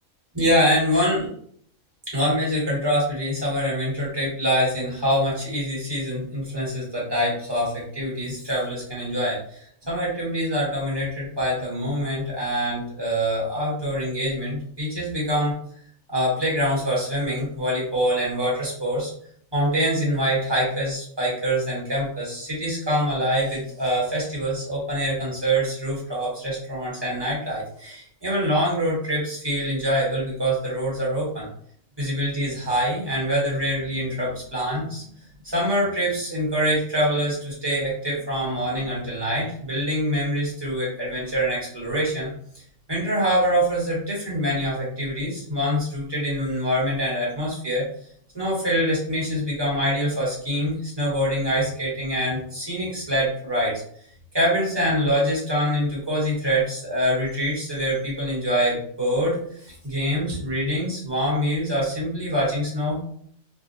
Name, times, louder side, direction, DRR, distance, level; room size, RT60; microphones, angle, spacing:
voice 1, 0.3-1.3 2.1-15.5 16.1-19.1 19.5-31.5 32.0-35.0 35.4-42.3 42.9-47.8 48.3-53.8 54.3-63.0, equal, 20° right, -6 dB, 1.3 m, -25 dB
3.5 x 2.3 x 2.7 m, 0.62 s
omnidirectional pair, 1.4 m